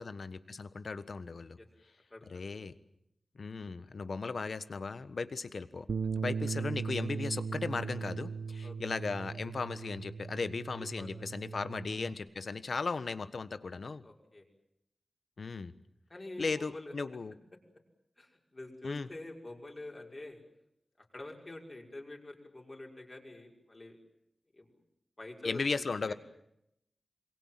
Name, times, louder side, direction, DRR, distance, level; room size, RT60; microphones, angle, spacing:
voice 1, 0.0-1.6 2.3-2.7 3.3-5.9 6.2-14.0 15.4-15.7 16.4-17.4 18.8-19.1 25.4-26.1, left 4 dB, 70° left, 13 dB, 1.4 m, -36 dB
voice 2, 2.1-2.6 8.6-8.7 10.8-11.1 11.4-11.6 14.0-14.5 16.1-16.9 18.2-20.4 21.0-24.0 24.5-24.7 25.2-25.6 26.1-26.2, left 2 dB, 35° left, 1 dB, 5.9 m, -46 dB
Bass guitar, 5.9-12.1, right 5 dB, 85° right, 1.0 m, -38 dB
27.0 x 24.0 x 7.6 m, 0.79 s
wide cardioid pair, 105°, 0 cm